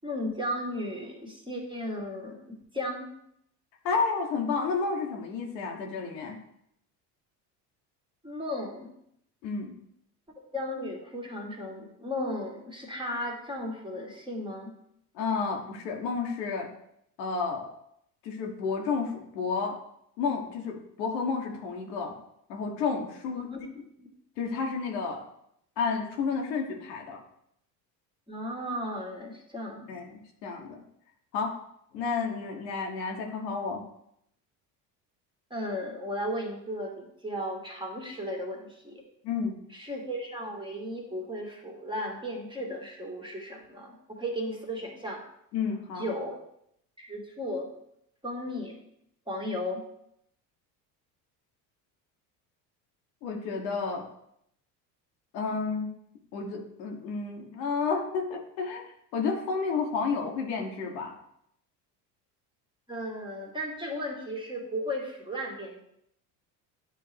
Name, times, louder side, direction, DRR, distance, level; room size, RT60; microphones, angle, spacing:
voice 1, 0.0-3.1 8.2-8.9 10.5-14.7 23.4-23.6 24.0-24.1 28.3-29.9 35.5-39.0 39.7-45.2 46.0-46.3 47.0-47.7 48.2-48.8 49.3-49.8 62.9-65.8, equal, 10° right, -1 dB, 1.6 m, -35 dB
voice 2, 3.8-6.4 9.4-9.7 15.1-16.7 17.2-17.7 18.2-19.7 20.2-22.1 22.5-23.5 24.4-25.2 25.8-27.2 29.9-30.8 31.3-31.5 31.9-33.8 39.2-39.6 45.5-46.1 53.2-54.0 55.3-55.9 56.3-61.1, left 5 dB, 80° left, 1 dB, 1.2 m, -31 dB
9.2 x 3.6 x 3.3 m, 0.74 s
hypercardioid pair, 75°, 50 cm